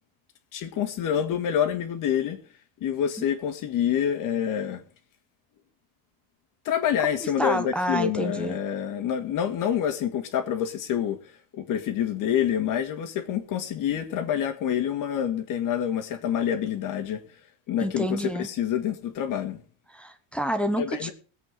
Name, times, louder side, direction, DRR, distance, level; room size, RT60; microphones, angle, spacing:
voice 1, 0.5-2.4 2.8-4.8 6.6-11.2 11.5-17.2 17.7-19.6 20.8-21.1, left 9 dB, 45° left, 2.1 m, -27 dB
voice 2, 7.2-8.6 17.8-18.5 19.9-21.1, equal, ahead, 0.9 m, -28 dB
21.0 x 8.2 x 3.9 m
cardioid pair, 140°, 45 cm